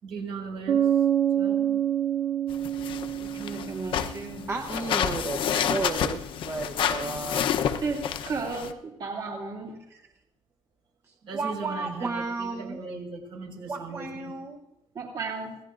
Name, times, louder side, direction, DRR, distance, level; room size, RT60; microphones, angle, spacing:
voice 1, 0.0-0.9 1.3-1.8 11.2-14.3, right 4 dB, 65° right, 1 dB, 4.9 m, -38 dB
Bass guitar, 0.7-4.3, right 10 dB, 90° right, 1.9 m, -26 dB
sound 1, 2.5-8.7, left 8 dB, 65° left, 0.8 m, -29 dB
voice 2, 3.2-4.5 7.8-9.8 14.9-15.6, right 4 dB, 45° right, -1 dB, 2.8 m, -34 dB
voice 3, 4.5-7.6 9.9-10.0 11.3-12.8 13.7-14.6, right 3 dB, 25° right, 3 dB, 0.9 m, -33 dB
26.0 x 17.0 x 2.5 m, 0.87 s
cardioid pair, 160°, 9 cm